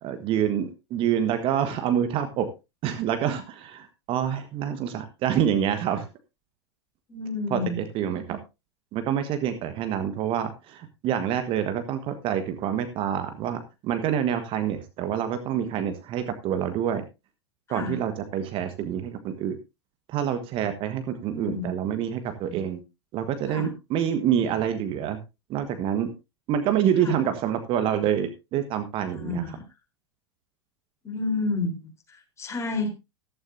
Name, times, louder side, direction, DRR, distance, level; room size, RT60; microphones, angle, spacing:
voice 1, 0.0-2.5 2.8-6.1 7.5-8.4 8.9-17.0 17.7-19.6 20.1-22.8 23.1-25.2 25.5-26.1 26.5-29.6, right 9 dB, 40° right, 9 dB, 1.5 m, -27 dB
voice 2, 7.1-7.8 17.7-18.0 21.3-21.7 23.5-23.7 27.0-27.1 29.1-29.6 31.0-32.9, left 3 dB, 20° left, 4 dB, 4.0 m, -30 dB
14.5 x 13.0 x 2.7 m, 0.25 s
figure-of-eight pair, 95°, 14 cm